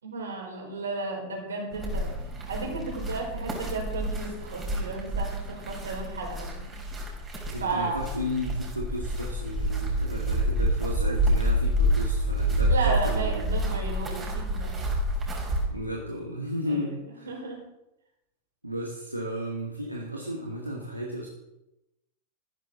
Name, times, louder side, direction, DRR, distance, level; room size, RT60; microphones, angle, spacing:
voice 1, 0.0-2.1 2.5-6.7 7.6-8.0 12.7-14.7 16.7-16.9 17.2-17.6, right 3 dB, 70° right, 0 dB, 4.6 m, -33 dB
sound 1, 1.7-15.7, equal, 20° right, 4.0 m, -28 dB
voice 2, 7.5-13.5 15.7-17.4 18.6-21.3, equal, 85° right, -2 dB, 1.9 m, -34 dB
14.0 x 12.5 x 3.8 m, 0.92 s
figure-of-eight pair, 90°, 0 cm